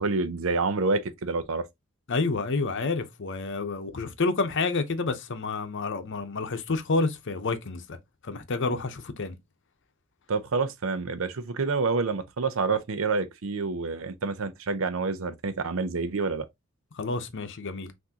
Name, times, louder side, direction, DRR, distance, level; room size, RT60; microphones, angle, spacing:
voice 1, 0.0-1.7 10.3-16.5, right 4 dB, 70° right, 0.6 m, -28 dB
voice 2, 2.1-8.0 8.2-9.4 16.9-17.9, left 3 dB, 60° left, 0.8 m, -29 dB
5.9 x 2.7 x 2.8 m
head